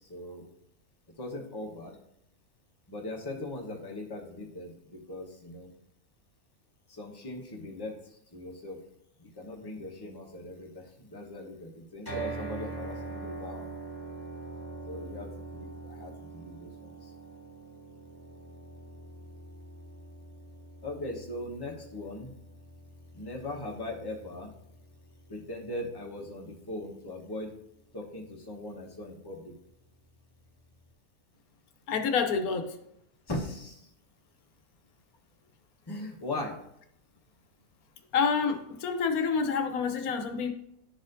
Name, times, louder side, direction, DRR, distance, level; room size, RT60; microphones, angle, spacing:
voice 1, 0.1-0.5 1.2-1.9 2.9-5.7 6.9-7.9 8.3-8.8 9.2-13.7 14.9-16.9 20.8-22.3 23.1-24.5 25.3-27.5 27.9-29.5 33.3-33.9 35.9-36.6, left 1 dB, 20° left, -1 dB, 1.0 m, -39 dB
sound 1, 12.1-26.2, right 3 dB, 15° right, 1.7 m, -43 dB
voice 2, 31.9-32.8 38.1-40.5, left 5 dB, 85° left, 6 dB, 1.2 m, -28 dB
11.5 x 4.2 x 2.6 m, 0.77 s
omnidirectional pair, 1.5 m